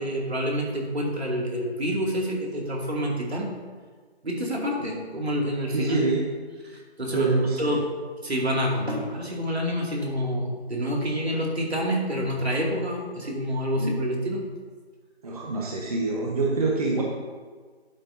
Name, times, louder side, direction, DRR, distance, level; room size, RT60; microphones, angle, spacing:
voice 1, 0.0-3.5 4.2-6.0 6.6-7.3 7.6-7.9 8.2-14.4, equal, 70° right, -2 dB, 2.6 m, -27 dB
voice 2, 5.7-6.2 7.1-7.7 13.8-13.9 15.2-17.0, right 3 dB, 35° right, -2 dB, 1.2 m, -26 dB
11.5 x 9.1 x 2.8 m, 1.5 s
figure-of-eight pair, 160°, 33 cm